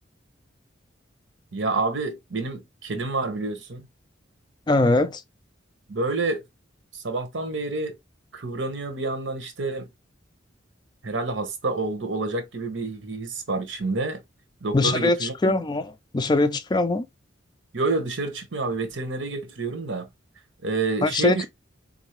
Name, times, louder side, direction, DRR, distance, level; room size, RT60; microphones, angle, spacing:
voice 1, 1.5-3.9 5.9-6.4 6.9-8.0 8.3-9.9 11.0-14.2 14.6-15.6 17.7-20.1 20.6-21.4, right 3 dB, 90° right, 1.0 m, -28 dB
voice 2, 4.7-5.2 14.7-17.1 21.0-21.4, left 2 dB, 25° left, 0.3 m, -22 dB
3.8 x 2.6 x 2.9 m
head